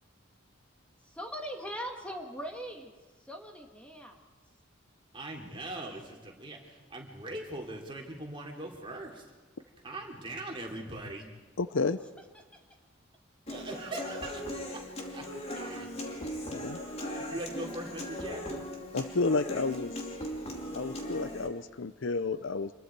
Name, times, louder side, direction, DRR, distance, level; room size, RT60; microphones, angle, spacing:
voice 1, 1.1-2.9 3.2-4.2 13.5-13.6, equal, 5° left, 2 dB, 2.0 m, -40 dB
voice 2, 5.1-9.3 9.8-11.3 13.5-14.8 15.1-15.3 15.6-15.9 17.1-18.6, right 2 dB, 25° right, 0 dB, 3.3 m, -41 dB
voice 3, 11.6-12.0 16.5-16.8 18.9-19.9 20.7-22.7, left 3 dB, 65° left, 14 dB, 0.6 m, -31 dB
Human voice / Acoustic guitar, 13.5-21.5, equal, 30° left, 2.7 m, -39 dB
27.5 x 21.5 x 4.7 m, 1.3 s
head